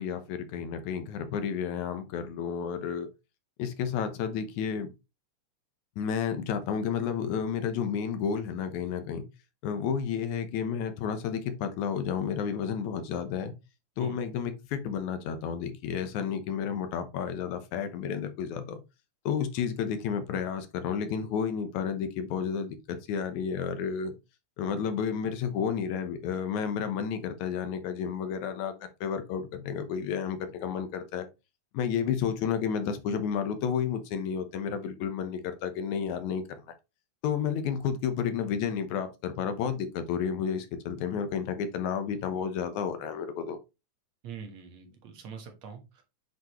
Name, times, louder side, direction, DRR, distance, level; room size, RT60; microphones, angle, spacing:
voice 1, 0.0-3.1 3.6-4.9 6.0-9.3 9.6-13.5 14.0-18.8 19.3-24.1 24.6-28.7 29.0-31.3 31.7-36.6 37.2-43.6, left 7 dB, 80° left, 2.3 m, -31 dB
voice 2, 44.2-46.0, right 6 dB, 65° right, 2.6 m, -44 dB
8.1 x 5.1 x 3.0 m
omnidirectional pair, 3.3 m